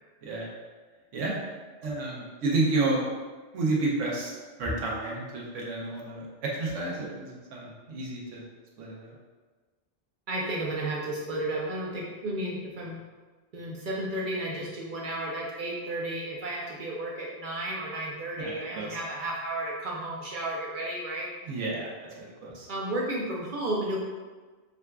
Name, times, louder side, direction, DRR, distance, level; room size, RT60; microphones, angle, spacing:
voice 1, 1.1-1.4 1.8-3.0 3.5-4.3 4.6-8.4 8.8-9.1 18.4-19.0 21.5-21.9 22.2-22.7, right 2 dB, 80° right, -3 dB, 1.1 m, -30 dB
voice 2, 10.3-13.0 13.5-21.3 22.7-24.0, right 1 dB, 60° right, -3 dB, 0.5 m, -33 dB
4.9 x 2.3 x 2.2 m, 1.3 s
omnidirectional pair, 1.3 m